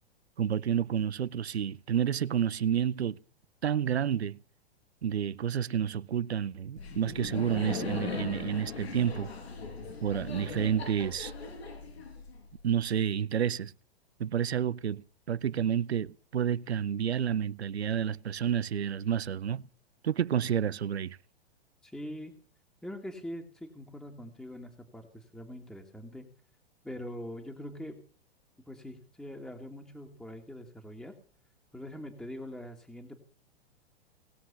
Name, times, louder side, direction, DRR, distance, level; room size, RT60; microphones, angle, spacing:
voice 1, 0.4-3.2 3.6-4.4 5.0-9.3 10.0-11.3 12.6-13.7 14.2-19.7 20.0-21.2, right 9 dB, 80° right, 0.7 m, -30 dB
Laughter, 6.8-12.6, left 4 dB, 80° left, 5.7 m, -39 dB
voice 2, 21.8-22.3 22.8-26.3 26.8-28.0 28.7-31.1 31.7-33.2, left 1 dB, ahead, 2.0 m, -43 dB
19.0 x 7.4 x 6.9 m
figure-of-eight pair, 105°, 32 cm